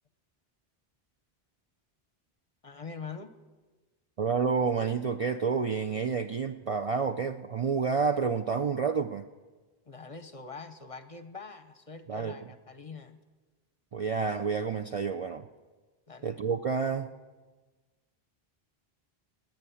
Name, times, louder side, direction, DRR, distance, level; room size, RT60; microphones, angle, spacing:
voice 1, 2.6-3.3 9.9-13.2 16.1-16.3, left 4 dB, 35° left, 10 dB, 0.8 m, -44 dB
voice 2, 4.2-9.3 12.1-12.4 13.9-15.5 16.2-17.1, right 5 dB, 50° right, 6 dB, 0.4 m, -29 dB
19.0 x 9.3 x 7.0 m, 1.3 s
omnidirectional pair, 1.0 m